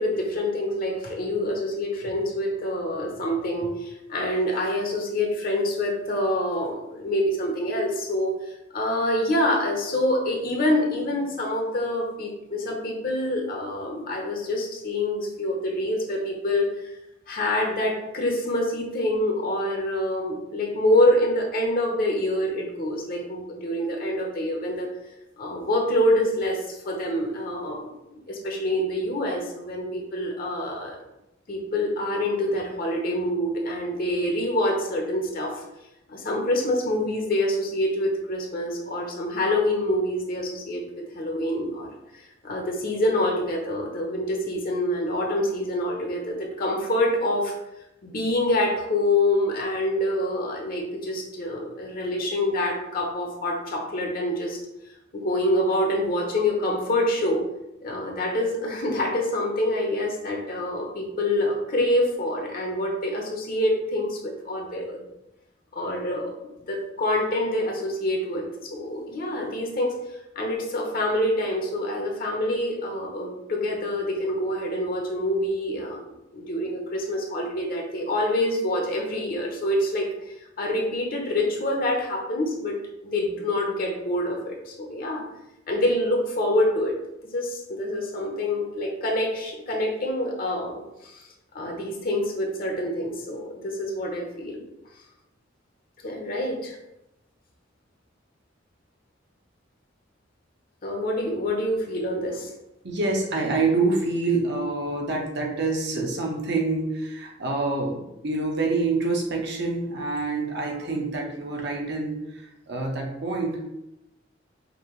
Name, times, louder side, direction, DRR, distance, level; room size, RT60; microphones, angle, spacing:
voice 1, 0.0-8.3 8.7-16.9 17.3-24.9 25.4-31.0 31.5-35.6 36.1-40.8 41.1-41.9 42.1-47.5 48.0-54.6 55.1-57.4 57.8-65.0 65.7-66.4 66.7-69.9 70.4-76.0 76.3-80.1 80.6-82.8 83.0-85.2 85.7-86.9 87.3-91.2 91.5-94.7 96.0-96.8 100.8-102.5, left 1 dB, 50° left, 0 dB, 0.8 m, -26 dB
voice 2, 102.8-113.7, right 3 dB, 60° right, 0 dB, 0.9 m, -27 dB
5.2 x 2.7 x 3.1 m, 0.89 s
head